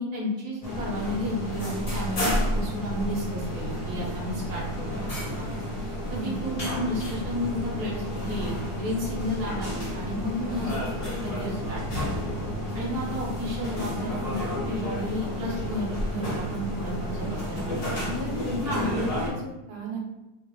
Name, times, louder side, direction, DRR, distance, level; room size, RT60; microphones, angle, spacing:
voice 1, 0.0-5.0 5.4-5.5 6.1-10.9 11.2-12.2 12.7-18.0 18.6-18.9, equal, 40° right, -5 dB, 0.8 m, -33 dB
sound 1, 0.6-19.3, equal, 45° left, 0.4 m, -31 dB
voice 2, 6.1-6.4 10.4-10.7 17.2-17.7 18.1-20.0, right 1 dB, 75° right, -2 dB, 1.2 m, -36 dB
2.5 x 2.0 x 3.0 m, 0.99 s
omnidirectional pair, 1.7 m